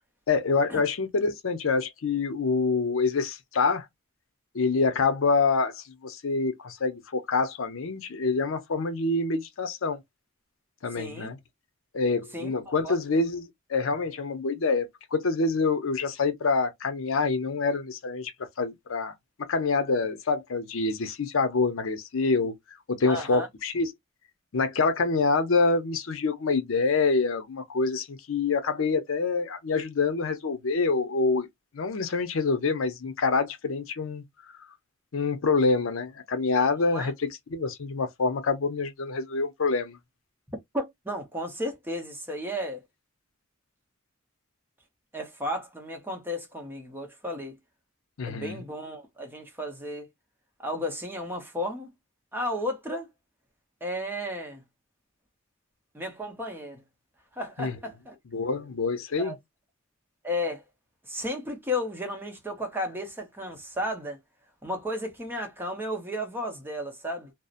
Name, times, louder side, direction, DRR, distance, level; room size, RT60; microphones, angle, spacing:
voice 1, 0.3-3.9 4.5-10.0 10.8-11.4 11.9-18.3 18.6-19.1 19.5-22.5 22.9-23.9 24.5-31.5 31.7-34.2 35.1-40.0 48.2-48.6 57.6-57.8 58.3-59.4, left 4 dB, 75° left, 0.6 m, -26 dB
voice 2, 11.0-11.3 12.3-12.5 12.8-13.0 23.1-23.5 36.8-37.1 40.7-42.8 45.1-47.6 48.2-50.1 50.6-51.9 52.3-53.1 53.8-54.6 55.9-56.8 57.4-58.2 59.2-59.4 60.2-60.6 61.1-64.2 64.6-67.3, left 1 dB, 10° right, 0.6 m, -33 dB
2.7 x 2.0 x 2.4 m
head